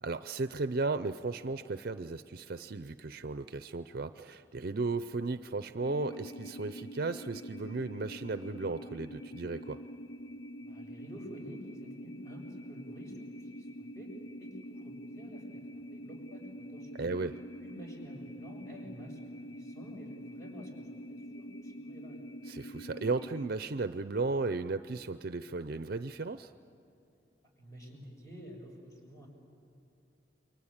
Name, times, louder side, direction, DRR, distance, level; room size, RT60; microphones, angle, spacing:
voice 1, 0.0-9.8 17.0-17.4 22.5-26.5, right 3 dB, 55° right, 11 dB, 0.6 m, -35 dB
sound 1, 5.8-23.5, equal, 70° left, 0.6 m, -45 dB
voice 2, 10.6-14.1 14.4-17.1 17.6-22.3 27.6-29.3, equal, 20° left, 0 dB, 6.6 m, -50 dB
29.0 x 23.0 x 8.8 m, 2.7 s
head